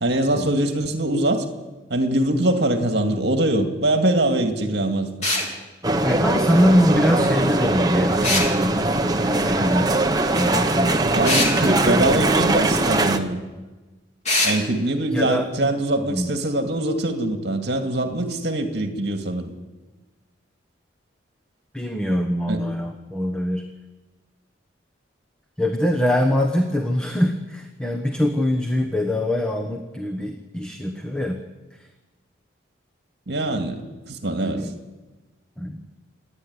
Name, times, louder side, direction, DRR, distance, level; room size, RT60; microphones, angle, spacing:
voice 1, 0.0-1.5 1.9-5.1 11.1-13.4 14.4-19.5 22.5-22.6 33.3-33.8 34.1-34.6, right 1 dB, 55° right, 5 dB, 2.3 m, -23 dB
sound 1, 5.2-5.5 8.2-8.5 11.2-11.5 14.2-14.6, left 2 dB, 35° left, 3.7 m, -21 dB
sound 2, 5.8-13.2, right 2 dB, 20° right, 1.0 m, -21 dB
voice 2, 6.0-9.9 10.3-11.1 11.6-12.3 15.1-15.5 16.1-16.3 21.7-23.6 25.6-31.4 31.7-31.9 34.4-34.8 35.6-35.8, equal, 5° left, 2 dB, 1.2 m, -23 dB
27.5 x 9.9 x 9.8 m, 1.2 s
head